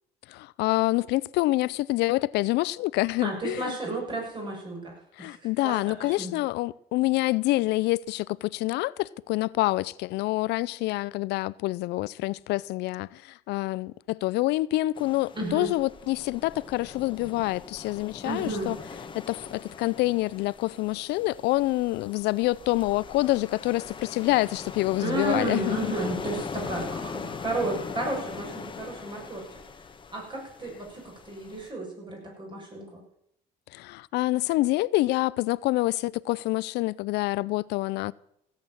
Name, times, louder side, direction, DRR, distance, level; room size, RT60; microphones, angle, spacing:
voice 1, 0.3-3.8 5.1-18.8 19.1-25.9 33.7-38.1, left 19 dB, 85° left, 0.4 m, -27 dB
voice 2, 3.2-5.4 5.6-5.7 6.0-6.3 15.3-15.7 18.2-18.7 25.0-29.6 30.1-33.0, right 2 dB, 30° right, 7.1 m, -32 dB
sound 1, 15.0-31.7, left 5 dB, 30° left, 1.3 m, -41 dB
16.5 x 8.6 x 7.2 m
cardioid pair, 110°, 17 cm